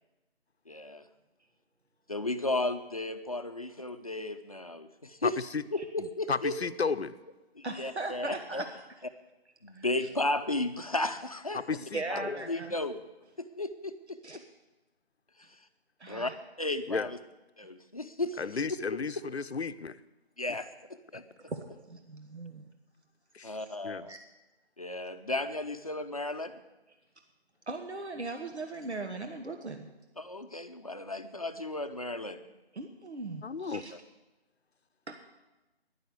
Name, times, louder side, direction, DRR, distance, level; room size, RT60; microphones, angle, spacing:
voice 1, 0.7-1.0 2.1-5.4 5.7-6.5 7.6-8.6 9.6-11.6 12.1-12.2 12.5-13.0 13.4-14.2 15.4-15.6 16.1-16.3 16.6-17.2 17.6-18.4 18.9-19.0 20.4-20.7 21.1-21.2 23.4-24.1 24.8-26.5 30.2-32.4 33.9-34.0, left 2 dB, 35° left, 8 dB, 0.7 m, -34 dB
voice 2, 5.2-5.6 6.0-7.2 11.5-12.5 16.9-17.1 18.4-20.0 23.3-23.6 23.8-24.0 33.4-33.8, left 5 dB, 75° left, 13 dB, 0.8 m, -33 dB
voice 3, 7.6-8.7 9.8-9.9 11.9-12.7 14.2-14.4 16.0-16.3 21.5-21.6 21.9-22.6 24.1-24.2 27.7-29.9 32.8-33.9 35.1-35.2, right 3 dB, 90° right, 5 dB, 1.5 m, -38 dB
10.5 x 10.5 x 8.2 m, 1.1 s
figure-of-eight pair, 165°, 32 cm